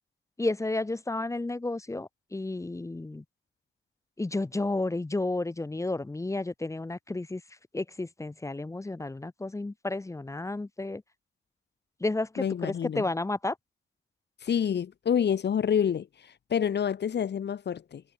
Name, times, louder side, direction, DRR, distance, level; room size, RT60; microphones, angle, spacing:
voice 1, 0.4-3.2 4.2-7.4 7.7-11.0 12.0-13.6, left 2 dB, 15° left, 1.5 m, -32 dB
voice 2, 12.4-13.0 14.4-18.0, left 8 dB, 55° left, 2.1 m, -28 dB
wide cardioid pair, 150°, 21 cm